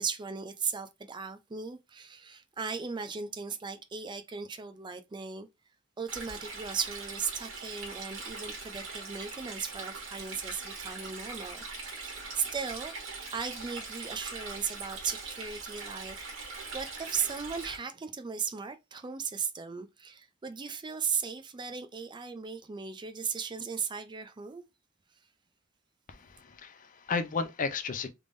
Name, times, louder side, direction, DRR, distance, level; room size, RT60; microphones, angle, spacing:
voice 1, 0.0-5.5 6.0-12.9 13.3-16.2 16.7-24.6, right 6 dB, 25° right, 0.4 m, -37 dB
Stream, 6.1-17.8, right 4 dB, 85° right, 1.7 m, -41 dB
voice 2, 26.1-28.1, left 4 dB, 40° left, 0.5 m, -33 dB
3.4 x 3.4 x 2.5 m
head